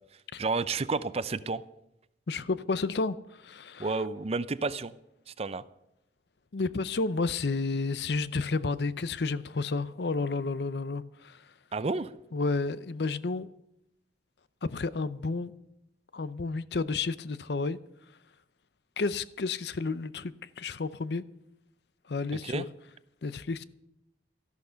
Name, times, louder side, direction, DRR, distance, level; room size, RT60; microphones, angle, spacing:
voice 1, 0.4-1.6 3.8-4.9 5.4-5.6 11.7-12.1 22.4-22.6, right 3 dB, 35° right, 0.5 m, -30 dB
voice 2, 2.3-3.9 6.5-11.4 12.3-13.5 14.6-15.5 16.1-17.8 19.0-21.2 22.1-22.7 23.2-23.6, left 3 dB, 65° left, 0.6 m, -31 dB
13.5 x 12.0 x 5.7 m
head